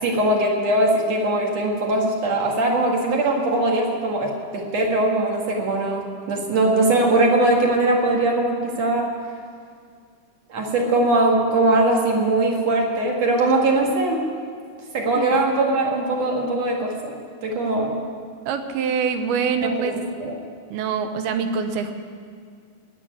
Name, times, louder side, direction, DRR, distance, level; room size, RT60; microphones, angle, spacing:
voice 1, 0.0-9.1 10.5-14.2 14.9-17.1 17.4-18.0 19.6-20.3, right 2 dB, 50° right, 0 dB, 2.7 m, -21 dB
voice 2, 18.5-20.0 20.7-21.9, right 6 dB, 80° right, 7 dB, 2.8 m, -24 dB
18.5 x 7.3 x 9.7 m, 2.1 s
omnidirectional pair, 4.4 m